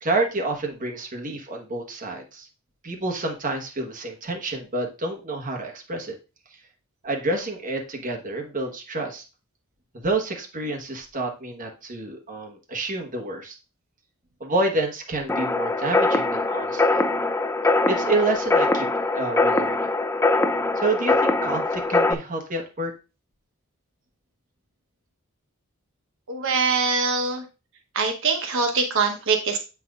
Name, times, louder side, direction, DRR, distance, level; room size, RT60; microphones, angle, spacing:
voice 1, 0.0-2.5 2.8-6.1 7.0-9.2 9.9-13.6 14.4-17.0 17.9-18.9 19.1-19.9 20.7-22.9, right 2 dB, 40° right, 1 dB, 1.2 m, -28 dB
sound 1, 15.3-22.1, left 2 dB, 10° left, 0.4 m, -22 dB
voice 2, 26.3-27.4 27.9-29.6, right 4 dB, 65° right, 4 dB, 1.0 m, -23 dB
7.9 x 5.8 x 2.4 m, 0.31 s
head